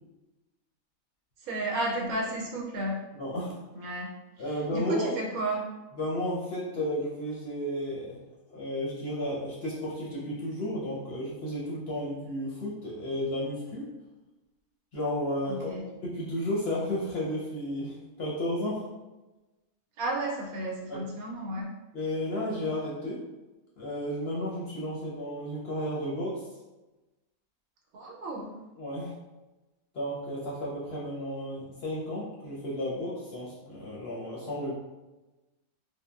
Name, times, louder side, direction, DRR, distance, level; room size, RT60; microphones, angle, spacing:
voice 1, 1.4-3.0 3.7-4.1 4.5-5.6 15.5-15.9 20.0-21.7 27.9-28.6, right 1 dB, 80° right, -1 dB, 1.0 m, -33 dB
voice 2, 3.1-3.6 4.4-5.1 6.0-8.2 8.5-13.9 14.9-15.7 16.0-18.9 20.9-21.0 21.9-23.2 23.8-26.4 28.8-29.1 29.9-34.7, left 1 dB, 60° left, -5 dB, 0.7 m, -33 dB
3.4 x 2.0 x 2.2 m, 1.1 s
omnidirectional pair, 1.5 m